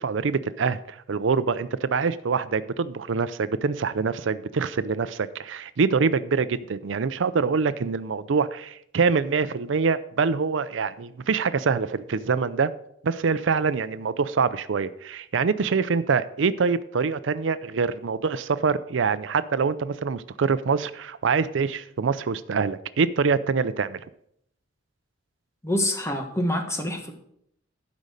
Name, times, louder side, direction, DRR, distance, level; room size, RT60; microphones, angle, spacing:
voice 1, 0.0-12.7 13.0-24.0, right 5 dB, 80° right, 15 dB, 0.5 m, -25 dB
voice 2, 25.6-27.1, left 1 dB, 15° left, 4 dB, 1.5 m, -26 dB
12.0 x 5.2 x 6.5 m, 0.72 s
head